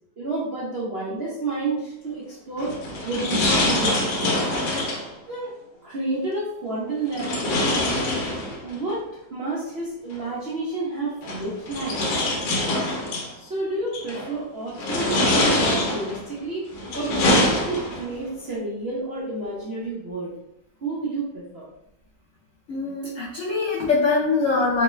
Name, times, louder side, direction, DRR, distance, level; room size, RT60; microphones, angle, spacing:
voice 1, 0.2-4.5 5.3-5.5 5.8-7.3 8.6-9.0 9.3-12.0 13.4-20.3 20.8-21.7, right 2 dB, 80° right, -7 dB, 0.5 m, -30 dB
sound 1, 2.6-5.1 7.1-8.8 10.1-10.2 11.2-13.3 13.9-14.3 14.7-16.2 16.7-18.1, left 1 dB, 65° left, 1.3 m, -24 dB
voice 2, 22.7-24.8, left 4 dB, 85° left, -6 dB, 0.6 m, -23 dB
3.5 x 2.3 x 3.0 m, 0.82 s
omnidirectional pair, 2.3 m